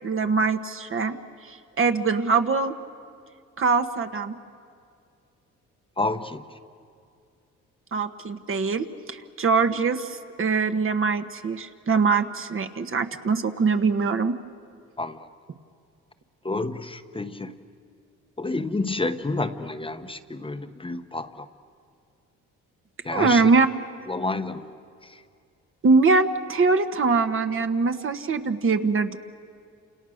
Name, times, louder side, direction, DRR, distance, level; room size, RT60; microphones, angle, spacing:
voice 1, 0.0-1.2 1.5-2.7 3.6-4.3 7.9-14.4 23.1-23.7 25.8-29.2, right 4 dB, 45° right, 7 dB, 1.4 m, -23 dB
voice 2, 6.0-6.4 15.0-15.3 16.4-17.5 18.4-21.5 23.0-23.5 24.1-24.8 25.0-25.2, left 2 dB, 15° left, 8 dB, 1.1 m, -29 dB
29.5 x 28.0 x 6.6 m, 2.3 s
cardioid pair, 90°, 30 cm